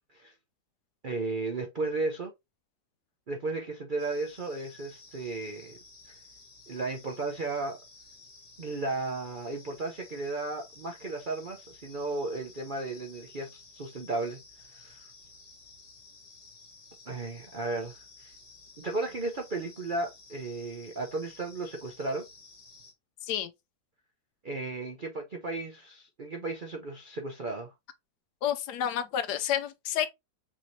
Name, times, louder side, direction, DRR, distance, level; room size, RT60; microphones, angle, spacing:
voice 1, 1.0-2.3 3.3-5.8 6.1-6.2 6.7-7.8 8.6-14.4 14.7-15.1 17.1-18.3 18.8-22.2 24.4-27.7, right 3 dB, 55° right, 0.5 m, -34 dB
sound 1, 4.0-22.9, left 3 dB, 45° left, 2.1 m, -54 dB
voice 2, 28.4-30.1, left 10 dB, 75° left, 1.1 m, -30 dB
6.0 x 3.0 x 2.7 m
omnidirectional pair, 1.9 m